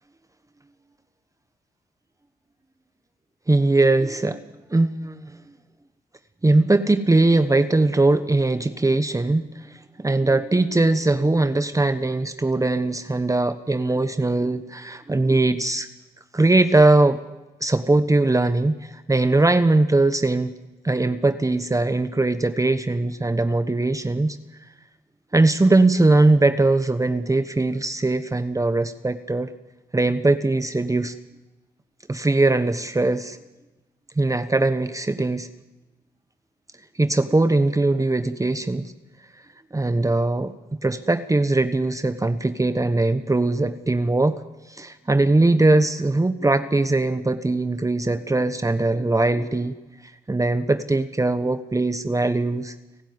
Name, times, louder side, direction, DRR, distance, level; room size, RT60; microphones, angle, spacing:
voice 1, 3.5-4.4 4.7-5.3 6.4-15.9 16.3-17.2 17.6-20.5 20.8-24.4 25.3-29.5 29.9-31.1 32.1-33.4 34.2-35.5 37.0-38.9 39.7-40.5 40.8-44.4 44.7-49.7 50.0-52.7, right 2 dB, 20° right, 10 dB, 1.1 m, -20 dB
30.0 x 12.5 x 9.5 m, 1.1 s
cardioid pair, 70°, 17 cm